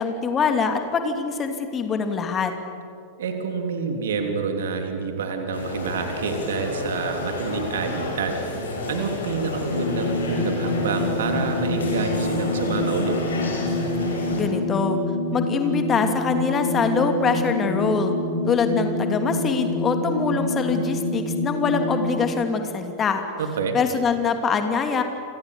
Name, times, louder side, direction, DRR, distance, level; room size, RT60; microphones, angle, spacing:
voice 1, 0.0-2.5 14.3-15.0 15.3-18.1 18.5-23.2 23.7-25.0, left 5 dB, 25° left, 6 dB, 2.8 m, -24 dB
voice 2, 3.2-13.2 23.4-23.7, right 5 dB, 60° right, 5 dB, 3.5 m, -28 dB
sound 1, 5.5-14.4, left 2 dB, 70° left, 6.3 m, -31 dB
sound 2, 9.6-22.3, left 2 dB, 90° left, 4.4 m, -26 dB
29.5 x 26.0 x 7.1 m, 2.4 s
figure-of-eight pair, 90°, 0 cm